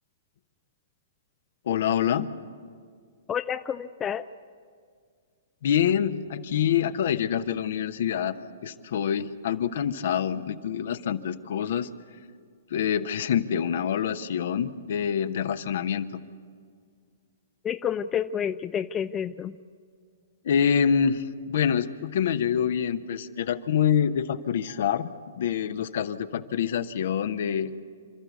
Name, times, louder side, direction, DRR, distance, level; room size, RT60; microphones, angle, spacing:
voice 1, 1.7-2.3 5.6-8.3 8.6-11.9 12.7-16.2 20.4-25.1 25.4-27.8, left 8 dB, 60° left, 11 dB, 1.0 m, -26 dB
voice 2, 3.3-4.2 17.6-19.6, left 8 dB, 20° left, 11 dB, 0.5 m, -29 dB
28.5 x 13.0 x 8.3 m, 2.1 s
hypercardioid pair, 120°, 0 cm